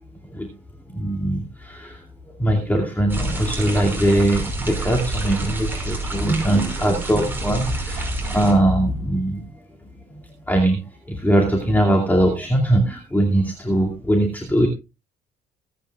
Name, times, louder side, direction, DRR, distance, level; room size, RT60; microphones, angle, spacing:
voice 1, 0.9-2.0 2.4-9.5 10.1-10.8 11.1-14.7, right 1 dB, 10° left, 0 dB, 2.4 m, -21 dB
sound 1, 3.1-8.5, right 2 dB, 10° right, 5.4 m, -28 dB
25.5 x 9.2 x 2.4 m, 0.28 s
cardioid pair, 110°, 17 cm